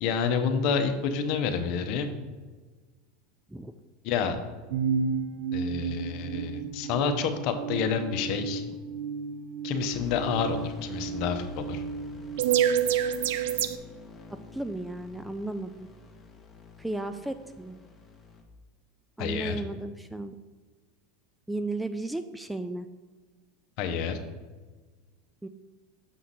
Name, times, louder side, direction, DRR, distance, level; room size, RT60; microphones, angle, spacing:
voice 1, 0.0-2.1 4.0-4.4 5.5-8.6 9.6-11.8 19.2-19.6 23.8-24.2, left 6 dB, 60° left, 6 dB, 0.8 m, -29 dB
sound 1, 4.7-13.8, right 7 dB, 75° right, 0.4 m, -30 dB
sound 2, 9.9-18.4, left 4 dB, 15° left, 1.1 m, -49 dB
voice 2, 14.3-15.9 16.8-17.8 19.2-20.4 21.5-22.9 25.4-25.5, right 2 dB, 5° right, 10 dB, 0.3 m, -35 dB
6.2 x 5.8 x 4.0 m, 1.4 s
supercardioid pair, 115°, 0 cm